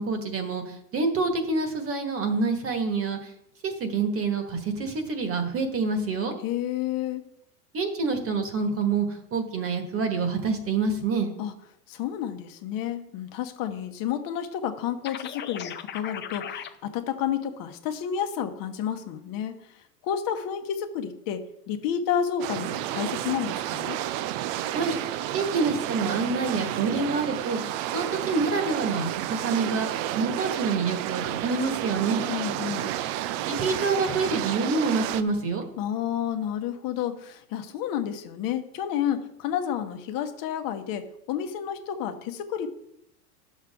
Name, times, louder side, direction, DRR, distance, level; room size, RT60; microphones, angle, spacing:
voice 1, 0.0-3.3 3.6-6.3 7.7-11.3 24.7-24.9 25.3-27.6 27.9-32.2 33.5-35.6, right 4 dB, 30° right, 6 dB, 1.5 m, -27 dB
voice 2, 6.4-7.2 11.4-11.5 11.9-24.0 32.3-32.9 35.8-42.7, left 9 dB, 50° left, 6 dB, 1.0 m, -30 dB
sound 1, 15.0-16.7, left 9 dB, 25° left, 0.6 m, -37 dB
sound 2, 22.4-35.2, right 13 dB, 60° right, 0.6 m, -31 dB
11.0 x 6.5 x 3.5 m, 0.77 s
supercardioid pair, 110°, 44 cm